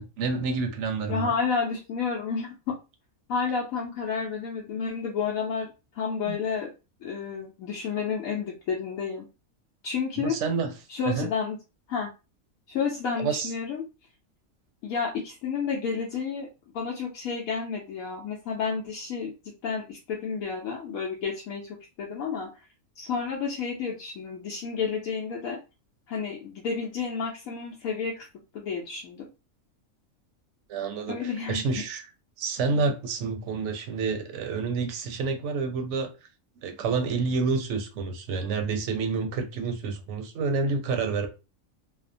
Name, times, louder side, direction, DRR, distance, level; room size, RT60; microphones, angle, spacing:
voice 1, 0.0-1.3 6.3-6.4 10.2-10.7 11.1-11.3 13.2-13.5 30.7-32.0 32.4-36.1 36.6-41.3, right 4 dB, 65° right, 0.8 m, -28 dB
voice 2, 1.1-2.8 3.3-6.7 7.0-9.3 9.8-10.3 10.9-11.6 11.9-12.1 12.7-13.8 14.8-16.5 16.7-19.3 19.6-22.7 23.0-25.6 26.1-28.3 28.5-29.3 31.1-31.8, left 5 dB, 80° left, 1.0 m, -31 dB
2.7 x 2.0 x 2.5 m
omnidirectional pair, 1.5 m